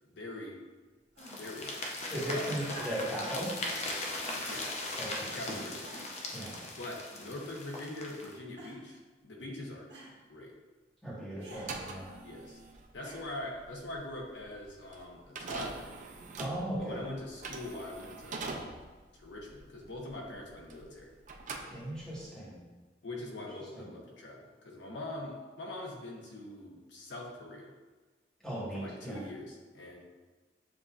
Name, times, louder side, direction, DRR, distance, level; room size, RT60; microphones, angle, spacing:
voice 1, 0.1-0.6 1.4-2.0 2.3-2.5 4.5-4.8 5.3-5.9 6.7-9.9 10.3-10.5 12.2-12.6 12.9-15.9 16.8-18.7 19.1-21.1 23.0-27.7 28.7-30.0, left 1 dB, 75° left, -1 dB, 0.8 m, -43 dB
sound 1, 1.1-1.6 2.6-3.2 4.2-4.5 5.2-5.3 5.8-6.3 7.1-7.6 8.6-9.0 9.9-10.2 11.4-11.7 13.0-13.5 14.5-14.6, equal, 65° right, 1.0 m, -50 dB
sound 2, 1.2-8.4, left 2 dB, 35° left, 0.5 m, -39 dB
voice 2, 2.1-3.5 5.0-5.6 6.3-6.5 11.0-12.1 16.4-17.0 21.7-22.6 23.7-23.8 28.4-29.2, right 1 dB, 5° left, -8 dB, 1.3 m, -37 dB
sound 3, 11.7-21.0 21.2-22.3, right 3 dB, 45° right, 0.4 m, -43 dB
7.3 x 2.6 x 2.4 m, 1.3 s
head